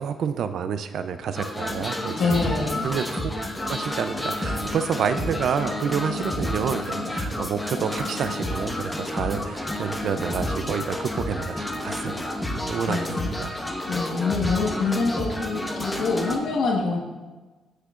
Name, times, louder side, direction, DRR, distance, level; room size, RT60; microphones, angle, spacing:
voice 1, 0.0-2.4 2.8-3.3 3.7-13.1 13.4-13.6, right 7 dB, 65° right, 10 dB, 0.5 m, -29 dB
sound 1, 1.3-16.4, left 1 dB, 10° left, 1.3 m, -30 dB
voice 2, 2.1-2.9 12.8-13.3 13.8-17.0, left 4 dB, 65° left, -3 dB, 1.6 m, -25 dB
19.5 x 6.6 x 2.5 m, 1.3 s
cardioid pair, 90°, 0 cm